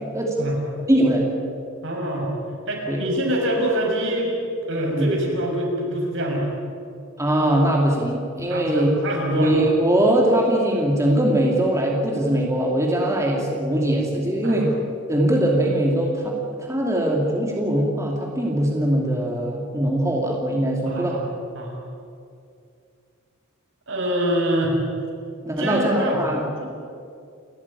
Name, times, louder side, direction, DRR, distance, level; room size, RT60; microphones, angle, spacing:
voice 1, 0.9-1.3 2.9-3.0 4.9-5.1 7.2-8.9 9.3-14.7 15.1-16.3 16.6-21.2 25.4-26.4, right 1 dB, 15° right, -1 dB, 2.7 m, -21 dB
voice 2, 1.8-2.3 2.7-4.3 4.7-6.5 8.5-9.5 14.4-14.6 20.8-21.2 21.5-21.8 23.9-24.8 25.6-26.2 26.6-26.7, right 1 dB, 65° right, 0 dB, 6.4 m, -25 dB
29.5 x 13.5 x 9.9 m, 2.4 s
head